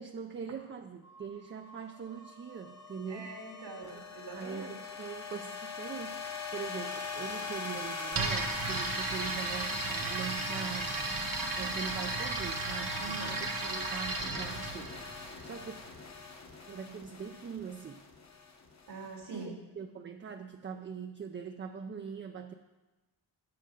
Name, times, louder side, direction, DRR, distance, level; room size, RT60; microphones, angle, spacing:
voice 1, 0.0-3.3 3.9-4.0 4.3-11.0 11.5-13.4 13.9-15.8 16.7-18.1 19.3-22.5, right 6 dB, 30° right, 6 dB, 0.4 m, -42 dB
sound 1, 1.0-19.3, left 4 dB, 40° left, 1.0 m, -42 dB
voice 2, 3.1-4.7 13.0-13.8 18.9-19.6, right 3 dB, 75° right, -2 dB, 1.7 m, -44 dB
sound 2, 8.1-15.9, right 3 dB, 50° right, 1.1 m, -35 dB
8.7 x 7.6 x 5.1 m, 1.1 s
wide cardioid pair, 120°, 43 cm